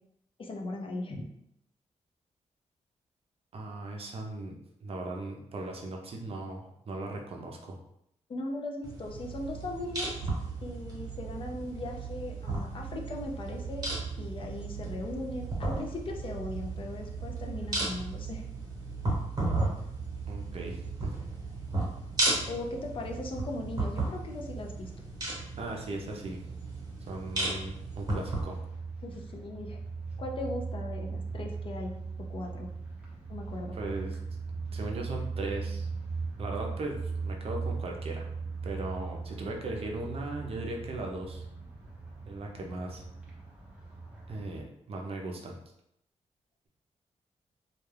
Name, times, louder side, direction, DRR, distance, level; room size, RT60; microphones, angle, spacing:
voice 1, 0.4-1.2 8.3-10.2 10.6-13.9 14.2-18.4 22.5-24.9 29.0-29.8 30.2-32.7 33.3-33.8, left 2 dB, 45° left, 1 dB, 0.4 m, -38 dB
voice 2, 3.5-4.5 4.8-7.8 20.3-21.1 25.6-26.4 27.1-28.6 33.7-34.2 34.7-35.9 36.4-38.3 38.6-41.4 42.3-43.0 44.3-45.6, right 2 dB, 50° right, 1 dB, 0.5 m, -38 dB
sound 1, 8.8-28.4, right 2 dB, 35° right, 1.0 m, -35 dB
sound 2, 28.1-44.6, right 4 dB, 10° right, 0.8 m, -38 dB
2.3 x 2.2 x 3.2 m, 0.76 s
wide cardioid pair, 125°, 12 cm